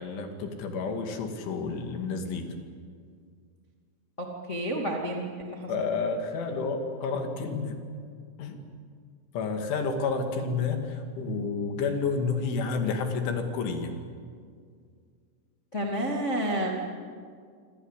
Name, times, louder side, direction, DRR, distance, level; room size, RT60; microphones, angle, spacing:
voice 1, 0.0-2.5 5.7-7.8 8.4-8.7 9.3-13.9, left 4 dB, 70° left, 5 dB, 4.7 m, -30 dB
voice 2, 4.2-5.9 15.7-16.7, right 1 dB, 30° left, -1 dB, 1.4 m, -30 dB
27.0 x 25.5 x 8.3 m, 2.1 s
omnidirectional pair, 5.7 m